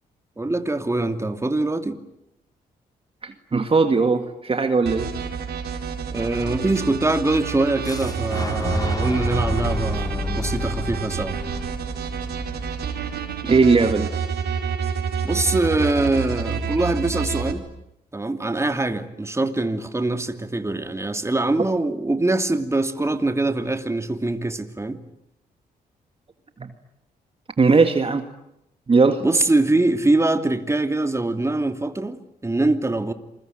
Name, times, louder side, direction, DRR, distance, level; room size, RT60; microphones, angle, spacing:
voice 1, 0.4-2.0 6.1-11.4 15.2-17.6 18.1-25.0 29.2-33.1, right 2 dB, 15° right, 2.7 m, -23 dB
voice 2, 3.2-5.1 13.4-14.1 27.6-28.3 28.9-29.2, right 4 dB, 35° right, 2.0 m, -18 dB
sound 1, 4.9-17.5, right 6 dB, 75° right, 4.8 m, -28 dB
Boom, 7.8-13.7, left 3 dB, 25° left, 3.9 m, -30 dB
28.0 x 22.0 x 9.2 m
cardioid pair, 75°, 17 cm